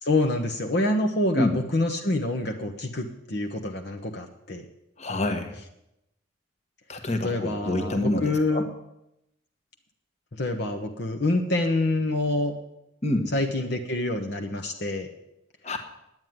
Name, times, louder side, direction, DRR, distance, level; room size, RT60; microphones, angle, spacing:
voice 1, 0.0-4.6 7.2-8.7 10.3-12.5 13.3-15.1, left 2 dB, 55° left, 3 dB, 1.0 m, -26 dB
voice 2, 5.0-5.6 6.9-8.7 13.0-13.3 15.6-15.8, left 1 dB, 35° left, 6 dB, 1.4 m, -27 dB
10.5 x 9.1 x 9.4 m, 0.86 s
head